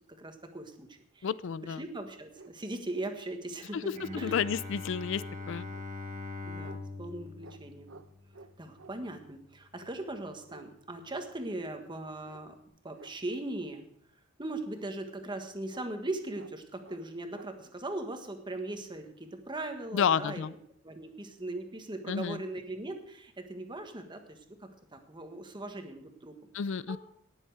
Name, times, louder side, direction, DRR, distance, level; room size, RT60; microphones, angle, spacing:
voice 1, 0.2-0.9 1.1-1.3 1.6-4.5 5.1-5.3 6.4-8.0 8.6-12.6 12.8-13.8 14.4-20.4 20.8-26.4 26.6-27.0, right 2 dB, 25° right, 6 dB, 1.4 m, -39 dB
voice 2, 1.2-1.8 3.7-3.8 4.1-5.7 19.9-20.5 22.1-22.4 26.5-27.0, left 7 dB, 65° left, 19 dB, 0.4 m, -31 dB
sound 1, 2.3-2.6 3.2-3.3 3.5-4.2 5.6-5.8 6.6-6.8 7.4-7.6 7.9-8.1 8.3-8.9 10.5-10.7 11.1-11.3 12.2-12.4 12.9-13.1 15.7-15.9 16.3-16.5 16.8-17.0 17.3-17.5, right 4 dB, 70° right, 0.8 m, -52 dB
Bowed string instrument, 3.9-9.6, left 3 dB, 40° right, 1.7 m, -43 dB
18.5 x 7.2 x 4.8 m, 0.71 s
head